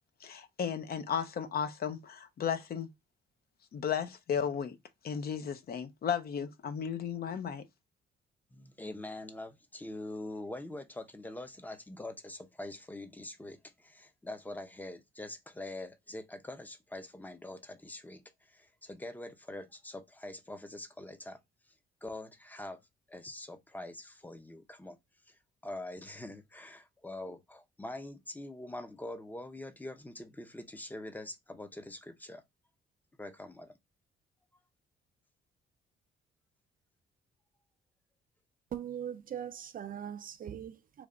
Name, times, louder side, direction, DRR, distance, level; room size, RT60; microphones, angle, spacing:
voice 1, 0.2-2.9 3.7-4.8 5.0-7.6, left 7 dB, 50° left, 0.6 m, -34 dB
voice 2, 8.5-21.4 22.0-22.8 23.1-25.0 25.3-32.4 33.2-33.7, left 1 dB, 10° left, 0.6 m, -44 dB
voice 3, 38.7-41.1, right 9 dB, 45° right, 0.4 m, -40 dB
3.3 x 2.4 x 3.7 m
cardioid pair, 90°, 20 cm